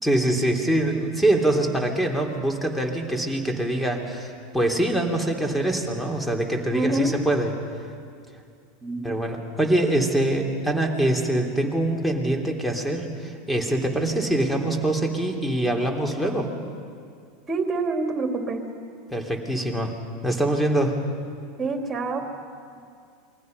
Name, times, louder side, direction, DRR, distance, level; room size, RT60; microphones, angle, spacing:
voice 1, 0.0-7.5 9.0-16.5 19.1-19.9 20.2-21.0, right 1 dB, 5° left, 2 dB, 3.5 m, -24 dB
voice 2, 6.7-7.1 8.8-9.1 17.5-18.6 21.6-22.4, right 3 dB, 25° right, 3 dB, 3.4 m, -27 dB
28.0 x 22.0 x 5.5 m, 2.3 s
hypercardioid pair, 90°, 0 cm